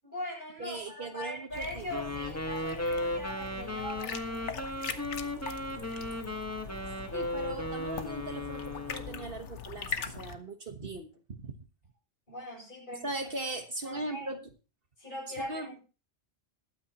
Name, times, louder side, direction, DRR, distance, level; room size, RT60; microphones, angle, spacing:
voice 1, 0.0-4.6 12.3-13.1 13.8-14.3 15.0-15.8, left 1 dB, 45° left, -1 dB, 7.3 m, -41 dB
voice 2, 0.6-1.8 6.8-6.9 7.1-11.6 13.0-14.5 15.4-15.7, right 2 dB, 50° right, 6 dB, 1.5 m, -39 dB
sound 1, 1.5-10.3, left 6 dB, 75° left, 1.4 m, -41 dB
Wind instrument woodwind instrument, 1.9-9.3, left 1 dB, 15° left, 1.6 m, -36 dB
21.0 x 9.2 x 3.0 m, 0.32 s
omnidirectional pair, 1.2 m